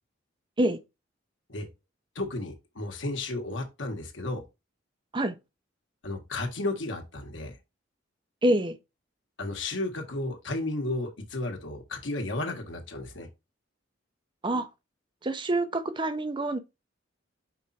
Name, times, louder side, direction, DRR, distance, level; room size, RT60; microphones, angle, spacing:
voice 1, 2.1-4.4 6.0-7.6 9.4-13.3, left 2 dB, 75° left, 1.6 m, -33 dB
voice 2, 8.4-8.8 14.4-14.7 15.2-16.6, right 1 dB, 25° right, 0.7 m, -26 dB
5.3 x 4.4 x 4.3 m
head